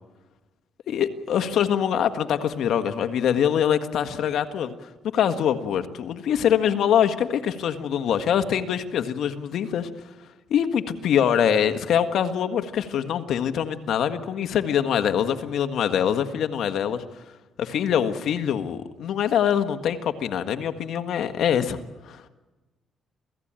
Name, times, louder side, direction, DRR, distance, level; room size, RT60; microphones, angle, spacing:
voice 1, 0.9-9.9 10.5-17.0 17.6-22.2, left 9 dB, 70° left, 9 dB, 1.6 m, -24 dB
28.0 x 17.0 x 9.0 m, 1.2 s
cardioid pair, 90°, 0 cm